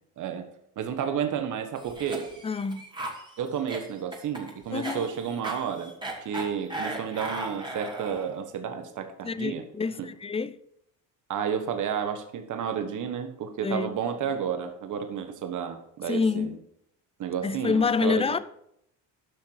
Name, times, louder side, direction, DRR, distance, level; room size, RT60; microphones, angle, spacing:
voice 1, 0.2-0.5 0.8-2.4 3.4-5.9 6.2-9.6 10.0-10.1 11.3-16.6 17.2-18.4, right 7 dB, 55° right, 1.3 m, -31 dB
Cough, 1.8-8.4, right 1 dB, 10° right, 2.4 m, -37 dB
voice 2, 2.4-2.9 4.7-5.1 9.2-10.6 13.6-13.9 16.1-16.6 17.4-18.4, left 4 dB, 15° left, 0.5 m, -27 dB
11.5 x 5.9 x 4.8 m
supercardioid pair, 85°, 37 cm